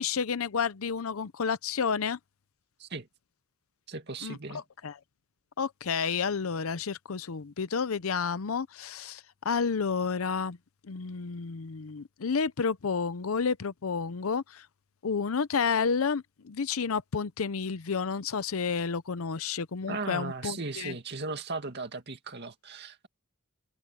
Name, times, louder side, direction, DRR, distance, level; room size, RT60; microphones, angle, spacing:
voice 1, 0.0-2.2 4.2-4.9 5.6-10.6 10.8-14.7 15.0-20.9, left 5 dB, 90° left, 0.7 m, -30 dB
voice 2, 3.9-4.6 19.9-23.1, right 3 dB, 55° right, 2.2 m, -37 dB
head